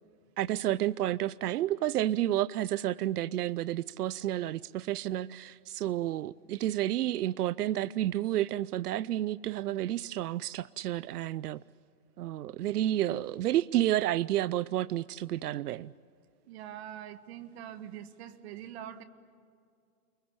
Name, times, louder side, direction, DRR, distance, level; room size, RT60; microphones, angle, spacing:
voice 1, 0.4-11.6 12.2-15.9, right 13 dB, 90° right, 21 dB, 0.6 m, -30 dB
voice 2, 16.5-19.0, right 10 dB, 45° right, 10 dB, 1.8 m, -44 dB
29.5 x 22.0 x 8.7 m, 2.3 s
hypercardioid pair, 155°, 45 cm